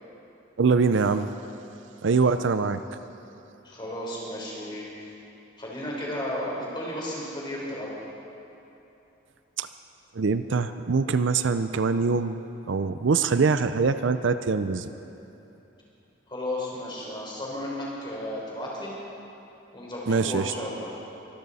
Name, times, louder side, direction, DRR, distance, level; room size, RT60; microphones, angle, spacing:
voice 1, 0.6-1.3 2.0-2.8 9.6-9.7 10.1-12.4 12.7-14.9 20.1-20.5, right 4 dB, 65° right, 11 dB, 0.5 m, -23 dB
voice 2, 3.6-5.1 5.6-8.0 16.3-18.9 19.7-21.0, left 1 dB, 25° left, -4 dB, 3.8 m, -34 dB
23.5 x 13.5 x 4.1 m, 2.9 s
head